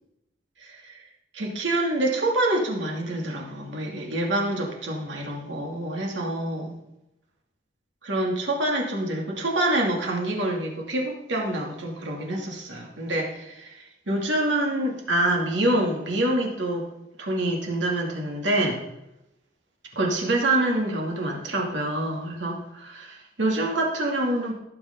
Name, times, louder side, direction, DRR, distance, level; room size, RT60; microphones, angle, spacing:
voice 1, 0.6-1.0 1.3-6.8 8.0-16.8 17.2-18.8 19.9-24.5, right 1 dB, 80° right, -1 dB, 2.8 m, -26 dB
18.5 x 7.2 x 4.0 m, 0.89 s
head